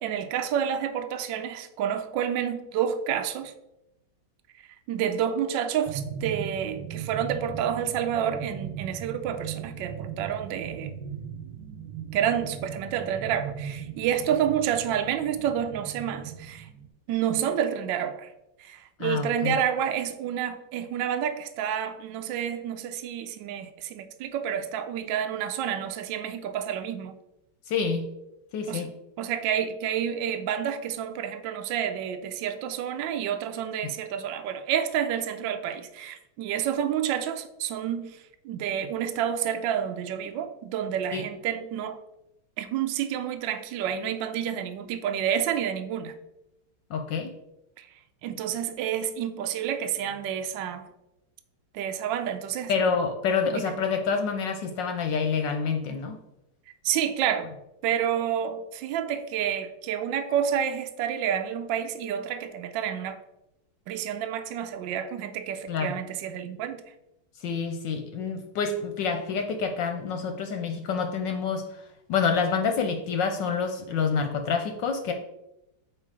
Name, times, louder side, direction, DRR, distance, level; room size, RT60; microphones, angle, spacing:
voice 1, 0.0-3.5 4.9-11.0 12.1-16.7 17.1-18.3 18.6-27.2 28.7-28.9 29.2-42.0 42.6-46.1 47.8-47.9 48.2-50.9 51.7-52.7 53.5-53.7 56.8-57.5 57.8-63.2 63.9-66.8, right 9 dB, 75° right, 8 dB, 1.1 m, -29 dB
sound 1, 5.9-16.9, right 8 dB, 90° right, 1.7 m, -38 dB
voice 2, 19.0-19.5 27.7-28.1 28.5-28.9 41.1-41.2 46.9-47.3 52.7-56.2 65.7-65.9 67.4-71.7 72.1-75.1, left 5 dB, 70° left, 6 dB, 1.2 m, -27 dB
5.6 x 4.8 x 4.8 m, 0.88 s
omnidirectional pair, 2.4 m